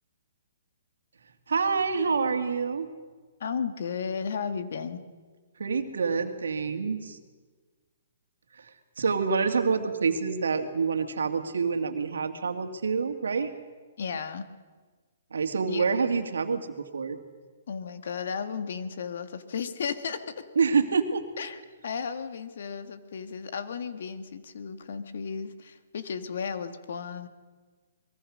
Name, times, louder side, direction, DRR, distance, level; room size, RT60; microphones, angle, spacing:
voice 1, 1.5-2.9 5.6-7.2 8.6-13.5 15.3-17.2 20.6-21.2, right 5 dB, 85° right, 6 dB, 2.3 m, -27 dB
voice 2, 3.4-5.0 14.0-14.4 15.6-15.8 17.7-20.5 21.4-27.3, left 6 dB, 70° left, 9 dB, 1.8 m, -34 dB
23.5 x 21.5 x 6.5 m, 1.4 s
hypercardioid pair, 140°, 0 cm